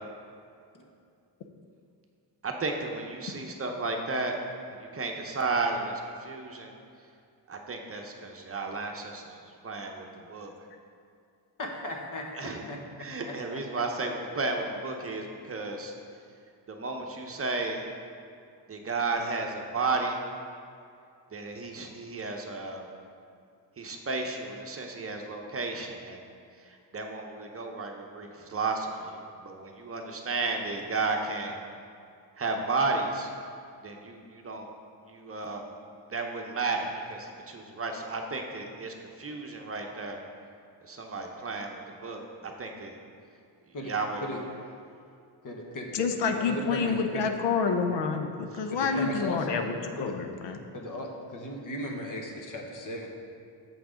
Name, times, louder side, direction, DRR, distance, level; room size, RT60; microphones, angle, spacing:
voice 1, 2.4-4.4 4.7-6.7 7.5-9.4 9.6-10.5 12.4-12.6 13.0-15.9 16.7-17.8 18.7-20.2 21.3-22.9 23.8-26.2 26.6-31.6 32.4-33.3 33.8-34.7 35.1-35.7 36.0-40.2 40.8-42.9 43.9-44.4 48.9-49.1, right 3 dB, 30° right, 2 dB, 0.8 m, -33 dB
voice 2, 11.6-13.6 43.7-43.9 44.2-44.4 45.4-47.3 48.7-49.6 50.0-50.2 50.7-53.1, left 1 dB, 45° left, 1 dB, 1.2 m, -37 dB
voice 3, 45.9-49.7 50.0-50.6, left 5 dB, 80° left, 5 dB, 0.7 m, -28 dB
7.1 x 6.0 x 5.0 m, 2.4 s
cardioid pair, 115°, 42 cm